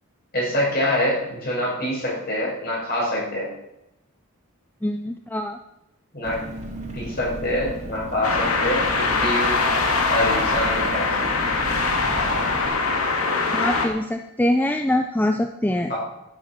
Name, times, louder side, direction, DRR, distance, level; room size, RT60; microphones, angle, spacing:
voice 1, 0.3-3.5 6.1-6.4 6.9-9.6 10.1-11.3 15.9-16.0, left 1 dB, 45° left, -4 dB, 6.4 m, -25 dB
voice 2, 4.8-5.6 13.5-15.9, left 1 dB, 10° left, 6 dB, 0.5 m, -23 dB
Engine, 6.2-12.7, equal, 30° right, 2.4 m, -35 dB
sound 1, 8.2-13.9, left 3 dB, 90° left, 2.2 m, -22 dB
12.0 x 10.5 x 6.1 m, 0.88 s
head